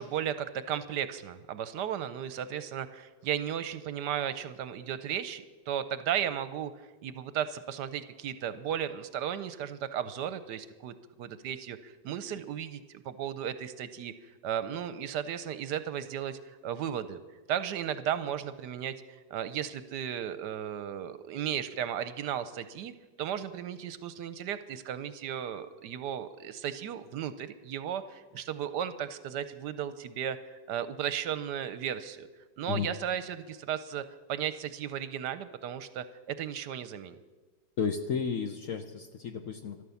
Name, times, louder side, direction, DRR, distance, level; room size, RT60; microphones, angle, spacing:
voice 1, 0.0-6.7 7.0-17.2 17.5-22.9 23.2-32.3 32.6-37.1, right 9 dB, 70° right, 13 dB, 1.2 m, -35 dB
voice 2, 37.8-39.8, left 6 dB, 60° left, 7 dB, 0.9 m, -33 dB
13.0 x 12.0 x 7.0 m, 1.3 s
omnidirectional pair, 2.0 m